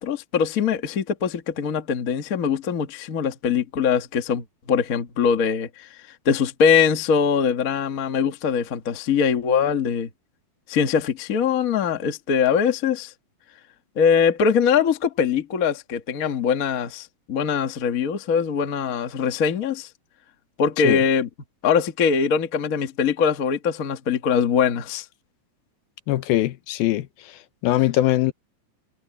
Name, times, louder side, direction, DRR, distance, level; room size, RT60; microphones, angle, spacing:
voice 1, 0.0-5.9 6.2-10.1 10.7-13.1 13.9-19.9 20.6-21.3 21.6-25.0, left 6 dB, 55° left, 0.9 m, -22 dB
voice 2, 26.1-27.3 27.6-28.3, left 15 dB, 85° left, 2.8 m, -21 dB
omnidirectional pair, 4.2 m